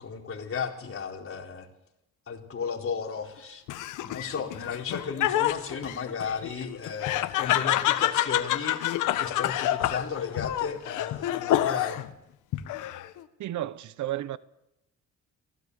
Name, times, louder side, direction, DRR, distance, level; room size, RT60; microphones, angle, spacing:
voice 1, 0.0-1.7 2.3-3.6 4.0-8.8 9.2-12.0, left 6 dB, 45° left, 4.3 m, -34 dB
Laughter, 3.7-12.1 12.5-13.2, left 13 dB, 85° left, 1.3 m, -28 dB
voice 2, 13.4-14.4, right 13 dB, 75° right, 1.0 m, -32 dB
23.0 x 16.5 x 8.3 m
cardioid pair, 90°, 30 cm